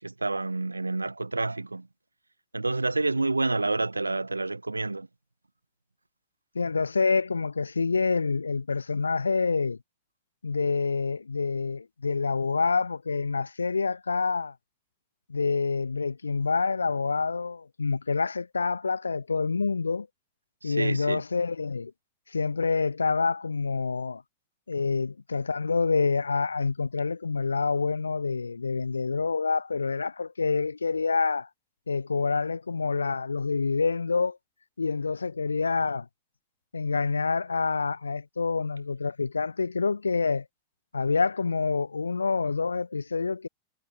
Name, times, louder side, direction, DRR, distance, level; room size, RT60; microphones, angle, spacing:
voice 1, 0.0-1.9 2.5-5.1 20.6-21.2, right 2 dB, 80° right, 1.8 m, -28 dB
voice 2, 6.5-9.8 10.4-14.5 15.3-20.1 20.6-21.9 22.3-24.2 24.7-31.5 31.9-34.4 34.8-36.1 36.7-40.4 40.9-43.5, left 4 dB, 75° left, 0.6 m, -27 dB
figure-of-eight pair, 90°, 0 cm